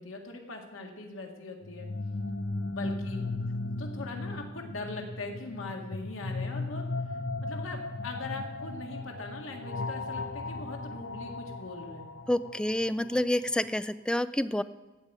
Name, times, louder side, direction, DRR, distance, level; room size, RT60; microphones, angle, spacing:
voice 1, 0.0-1.9 2.7-3.2 3.8-6.8 7.4-12.1, left 2 dB, 85° left, 2 dB, 2.0 m, -41 dB
sound 1, 1.6-13.5, left 2 dB, 60° left, 0.8 m, -36 dB
voice 2, 12.3-14.6, left 1 dB, 5° left, 13 dB, 0.3 m, -28 dB
15.5 x 5.2 x 8.9 m, 1.2 s
head